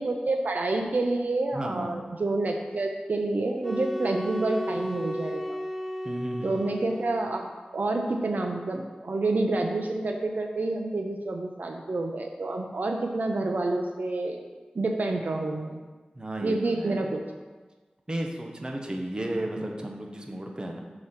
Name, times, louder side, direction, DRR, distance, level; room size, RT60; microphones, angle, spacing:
voice 1, 0.0-5.4 6.4-14.4 14.7-15.8 16.4-17.2, right 2 dB, 70° right, 3 dB, 0.6 m, -28 dB
voice 2, 1.5-2.0 6.0-6.7 16.1-17.1 18.1-20.8, right 1 dB, 30° right, 1 dB, 1.0 m, -33 dB
sound 1, 3.6-7.5, equal, 5° right, 0.5 m, -34 dB
5.7 x 4.9 x 5.7 m, 1.3 s
wide cardioid pair, 60°, 3 cm